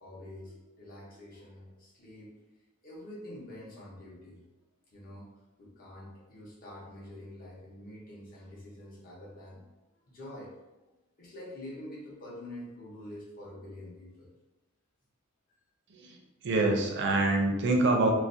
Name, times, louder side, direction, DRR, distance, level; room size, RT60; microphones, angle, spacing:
voice 1, 0.0-2.3 2.8-4.4 4.9-5.3 5.6-9.6 10.1-10.5 11.2-14.3, left 1 dB, 40° left, -5 dB, 0.7 m, -46 dB
voice 2, 16.4-18.1, right 2 dB, 55° right, 2 dB, 0.4 m, -25 dB
2.4 x 2.1 x 2.5 m, 1.0 s
head